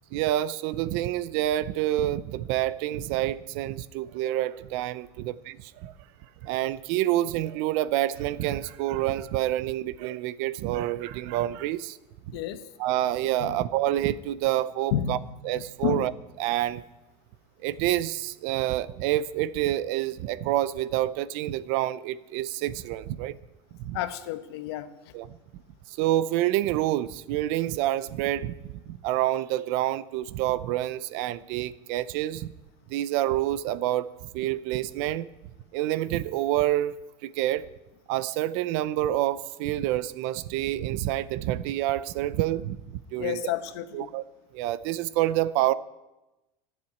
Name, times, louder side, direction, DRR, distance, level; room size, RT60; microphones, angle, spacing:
voice 1, 0.1-5.9 6.4-12.0 12.3-12.4 12.8-15.2 15.4-16.1 16.4-16.8 17.6-23.4 23.8-24.0 25.1-25.4 25.9-32.5 32.9-35.3 35.7-37.6 38.1-43.4 43.9-44.2 44.5-45.7, right 14 dB, 50° right, 16 dB, 0.5 m, -28 dB
voice 2, 12.3-12.6 13.4-13.6 14.9-15.3 15.8-16.1 23.9-24.9 43.2-44.1, left 11 dB, 70° left, 10 dB, 1.1 m, -30 dB
14.0 x 7.4 x 9.3 m, 1.0 s
supercardioid pair, 170°, 13 cm